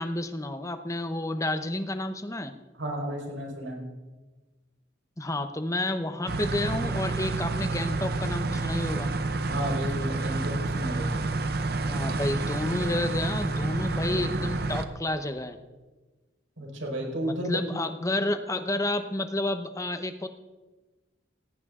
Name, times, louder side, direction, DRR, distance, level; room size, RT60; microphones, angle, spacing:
voice 1, 0.0-2.5 5.2-9.1 11.8-15.6 17.5-20.3, left 1 dB, 15° left, 9 dB, 0.9 m, -30 dB
voice 2, 2.8-3.8 9.4-11.1 16.6-17.8, equal, 80° right, 0 dB, 4.9 m, -32 dB
sound 1, 6.3-14.9, right 3 dB, 50° right, 0.8 m, -29 dB
18.5 x 16.5 x 3.8 m, 1.2 s
head